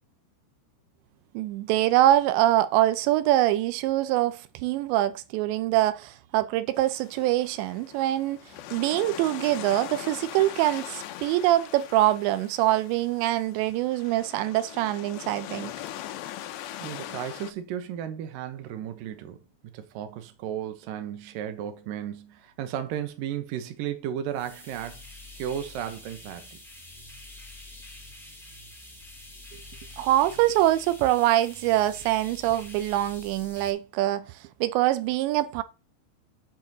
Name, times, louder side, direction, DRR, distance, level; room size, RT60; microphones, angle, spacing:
voice 1, 1.3-8.4 8.7-15.7 29.5-29.6 30.0-34.3 34.6-35.6, right 14 dB, 90° right, 2.9 m, -24 dB
sound 1, 6.8-17.5, left 12 dB, 80° left, 2.9 m, -41 dB
voice 2, 16.8-25.0 25.4-26.6, right 10 dB, 70° right, 2.4 m, -34 dB
sound 2, 24.3-33.7, left 1 dB, ahead, 1.4 m, -46 dB
7.7 x 4.5 x 6.7 m
omnidirectional pair, 5.0 m